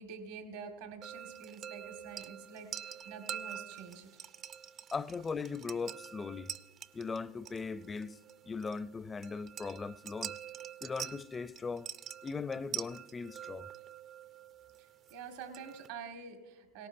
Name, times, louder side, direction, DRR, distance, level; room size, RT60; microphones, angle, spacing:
voice 1, 0.0-4.2 14.8-16.9, right 5 dB, 70° right, 1.6 m, -47 dB
sound 1, 1.0-15.9, right 9 dB, 40° right, 0.5 m, -46 dB
voice 2, 4.9-6.6 6.9-8.2 8.4-10.4 10.8-11.9 12.2-13.7, left 4 dB, 20° left, 0.4 m, -39 dB
18.0 x 17.5 x 2.6 m
hypercardioid pair, 105°, 0 cm